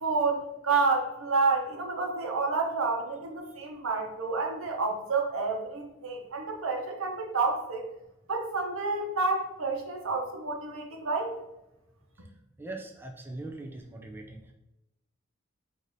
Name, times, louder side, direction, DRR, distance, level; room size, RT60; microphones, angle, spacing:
voice 1, 0.0-7.8 8.3-11.3, right 4 dB, 85° right, 2 dB, 0.9 m, -29 dB
voice 2, 12.6-14.5, right 2 dB, 10° right, 1 dB, 0.4 m, -41 dB
4.7 x 2.7 x 3.9 m, 0.92 s
head